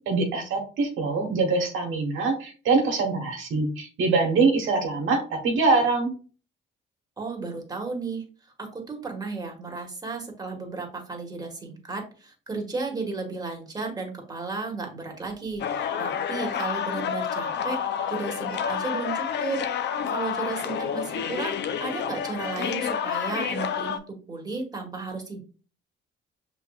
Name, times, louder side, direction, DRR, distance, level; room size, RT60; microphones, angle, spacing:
voice 1, 0.1-6.1, right 3 dB, 80° right, 2 dB, 1.1 m, -24 dB
voice 2, 7.2-8.2 8.6-17.8 18.1-25.4, right 3 dB, 20° right, 1 dB, 1.6 m, -34 dB
sound 1, 15.6-24.0, left 8 dB, 60° left, 0.5 m, -29 dB
5.7 x 3.4 x 2.3 m, 0.37 s
cardioid pair, 90°, 20 cm